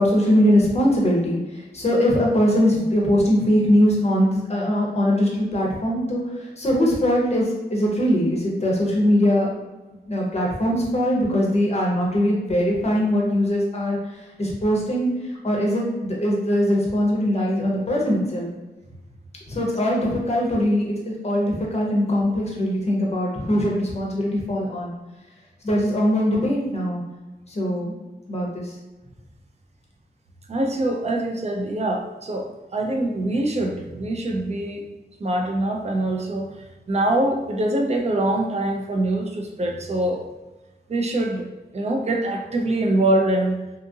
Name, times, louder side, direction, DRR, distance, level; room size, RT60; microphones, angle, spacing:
voice 1, 0.0-9.5 10.1-18.5 19.5-24.9 25.6-27.0 27.5-28.0 28.3-28.8, equal, 35° left, -2 dB, 0.6 m, -21 dB
voice 2, 30.5-34.8 35.2-36.5 36.9-40.2 40.9-41.4 41.7-43.6, right 1 dB, 40° right, 2 dB, 0.4 m, -24 dB
2.7 x 2.4 x 2.6 m, 1.1 s
wide cardioid pair, 145°, 18 cm